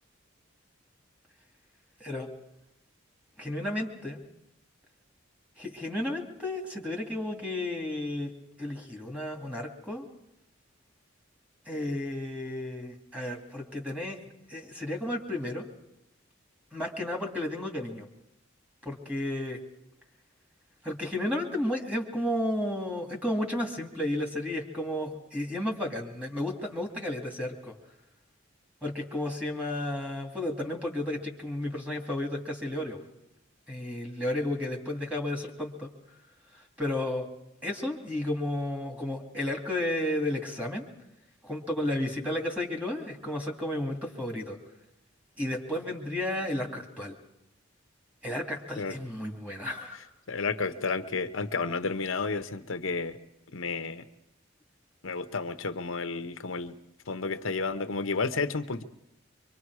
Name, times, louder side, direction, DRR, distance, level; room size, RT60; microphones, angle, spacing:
voice 1, 3.4-4.2 5.6-8.3 8.6-10.1 11.7-14.2 14.5-15.7 16.7-18.1 18.8-19.6 20.8-27.7 28.8-33.0 33.7-35.9 36.8-37.3 37.6-40.9 41.4-44.6 45.4-47.1 48.2-50.0, left 1 dB, 5° right, 2 dB, 2.3 m, -32 dB
voice 2, 50.3-53.2 53.5-54.0 55.0-56.7 57.1-58.8, left 4 dB, 80° left, 9 dB, 0.9 m, -31 dB
24.5 x 24.0 x 4.8 m, 0.84 s
head